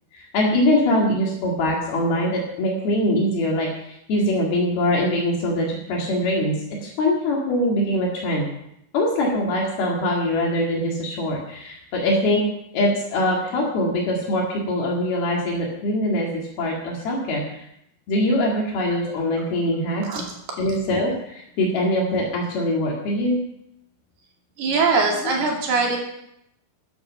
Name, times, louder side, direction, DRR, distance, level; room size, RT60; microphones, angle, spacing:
voice 1, 0.1-6.5 6.8-8.5 8.9-12.4 12.7-17.6 18.1-20.0 20.6-23.4 25.2-25.3, left 1 dB, 70° left, -2 dB, 4.1 m, -23 dB
voice 2, 24.6-26.0, right 4 dB, 70° right, -1 dB, 4.5 m, -21 dB
13.5 x 10.5 x 5.8 m, 0.77 s
omnidirectional pair, 4.7 m